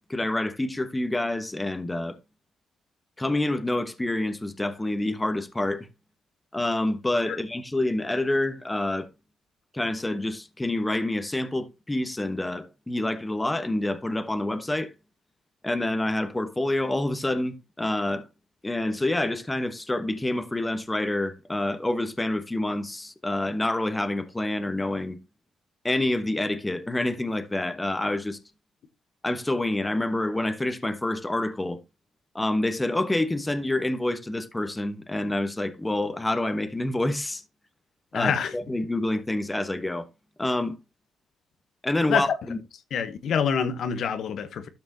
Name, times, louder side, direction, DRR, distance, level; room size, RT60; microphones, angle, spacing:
voice 1, 0.0-2.2 3.2-5.9 6.5-9.1 9.7-14.9 15.6-18.3 18.6-25.2 25.8-28.4 29.2-31.8 32.3-37.4 38.1-40.1 40.4-40.8 41.8-42.6, left 1 dB, 15° left, 1.0 m, -27 dB
voice 2, 38.1-38.5 42.1-42.3 42.9-44.7, left 7 dB, 65° left, 1.0 m, -26 dB
13.0 x 5.9 x 2.7 m
cardioid pair, 90°, 0 cm